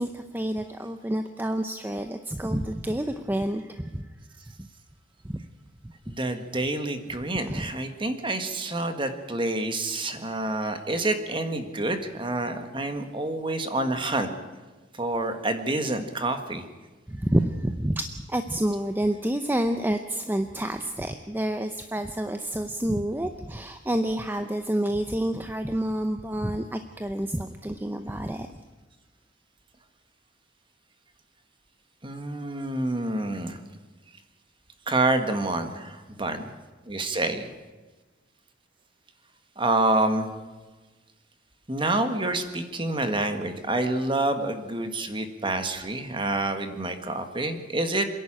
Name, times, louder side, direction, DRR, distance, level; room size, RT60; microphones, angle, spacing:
voice 1, 0.0-4.1 5.2-5.5 7.5-7.7 17.1-28.5, right 1 dB, 10° right, 7 dB, 0.7 m, -28 dB
voice 2, 6.1-14.3 15.0-16.6 32.0-33.6 34.9-36.4 36.9-37.5 39.6-40.3 41.7-48.1, right 2 dB, 25° right, 7 dB, 1.6 m, -27 dB
27.0 x 11.0 x 8.8 m, 1.3 s
head